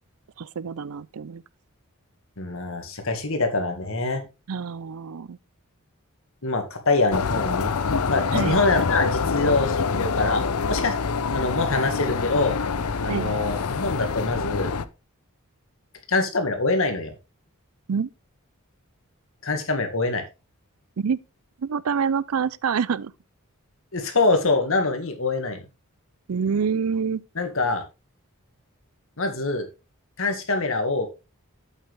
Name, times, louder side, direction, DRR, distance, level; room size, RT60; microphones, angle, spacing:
voice 1, 0.4-1.4 4.5-5.4 8.3-8.6 13.1-13.3 17.9-18.1 21.0-21.2 21.6-23.1 26.3-27.2, right 6 dB, 75° right, 0.5 m, -26 dB
voice 2, 2.4-4.2 6.4-7.7 8.1-10.4 10.7-12.6 13.0-14.7 16.1-17.1 19.4-20.2 23.9-25.6 27.4-27.8 29.2-29.7 30.2-31.1, left 3 dB, 65° left, 1.9 m, -24 dB
sound 1, 7.1-14.9, left 5 dB, 80° left, 0.6 m, -26 dB
8.2 x 7.8 x 3.4 m
head